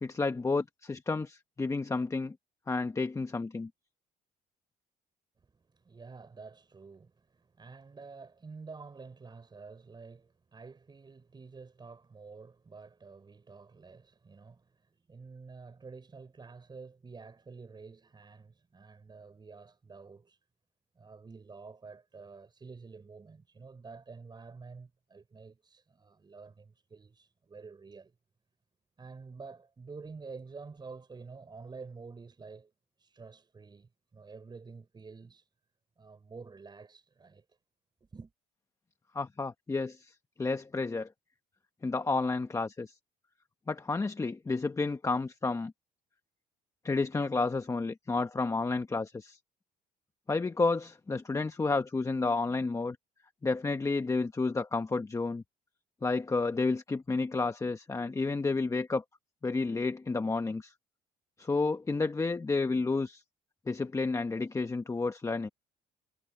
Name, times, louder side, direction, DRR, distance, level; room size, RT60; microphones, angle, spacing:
voice 1, 0.0-2.3 2.7-3.7 39.1-41.1 41.8-42.9 43.7-45.7 46.8-49.4 50.3-53.0 53.4-55.4 56.0-59.0 59.4-60.7 61.4-63.2 63.7-65.5, left 3 dB, 20° left, 1.2 m, -31 dB
voice 2, 5.4-20.4 21.0-28.1 29.0-32.7 33.0-35.5 36.0-37.6 38.1-38.3, right 4 dB, 25° right, 5.6 m, -49 dB
cardioid pair, 110°, 17 cm